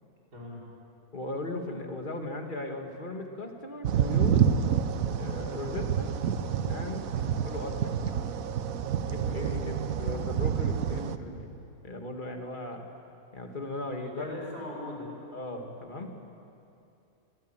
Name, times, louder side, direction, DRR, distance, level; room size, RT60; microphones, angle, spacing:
voice 1, 0.3-0.7 7.1-7.4 13.8-15.1, left 1 dB, 85° right, -5 dB, 6.2 m, -41 dB
voice 2, 1.1-4.5 5.0-6.2 6.7-7.2 7.4-7.9 9.1-11.6 11.8-12.8 13.3-14.3 15.3-16.1, left 2 dB, 30° left, 3 dB, 2.1 m, -37 dB
sound 1, 3.8-11.2, right 8 dB, 65° right, 1.2 m, -28 dB
24.5 x 17.5 x 9.0 m, 2.7 s
omnidirectional pair, 1.7 m